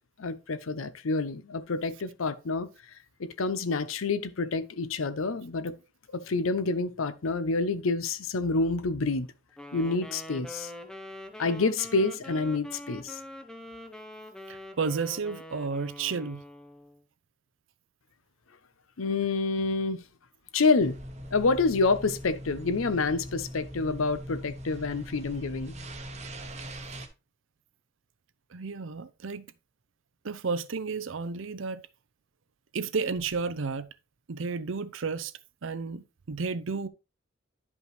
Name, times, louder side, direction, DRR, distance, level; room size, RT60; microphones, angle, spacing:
voice 1, 0.2-2.7 3.2-5.7 6.1-9.3 9.7-10.7 11.4-13.2 19.0-20.0 20.5-21.0 21.3-25.7, left 3 dB, 80° left, 0.7 m, -28 dB
Wind instrument woodwind instrument, 9.6-17.0, left 1 dB, 5° left, 0.6 m, -44 dB
voice 2, 14.5-16.4 28.5-29.5 30.2-31.8 32.7-33.9 34.3-35.3 35.6-36.9, right 4 dB, 70° right, 0.6 m, -32 dB
sound 1, 20.8-27.1, equal, 35° right, 1.0 m, -41 dB
11.0 x 5.3 x 3.2 m
head